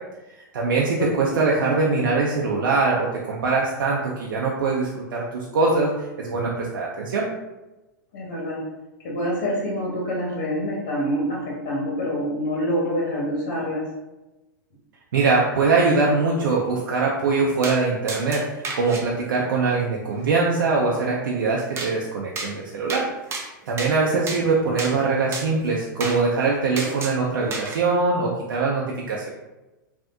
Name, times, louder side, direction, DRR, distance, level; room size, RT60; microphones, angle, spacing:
voice 1, 0.3-5.9 6.2-7.3 15.1-23.0 23.7-29.3, right 4 dB, 80° right, -3 dB, 0.5 m, -22 dB
voice 2, 1.0-1.3 8.1-8.6 9.0-13.8, equal, 60° left, -4 dB, 1.2 m, -26 dB
sound 1, 17.6-17.8 18.1-19.0 21.8-21.9 22.4-22.5 22.9-23.1 23.3-23.9 24.3-24.4 24.8-24.9 25.3-25.5 26.0-26.2 26.8-27.2 27.5-27.8, right 3 dB, 25° right, 0.6 m, -31 dB
3.4 x 2.6 x 2.6 m, 1.1 s
hypercardioid pair, 115°, 11 cm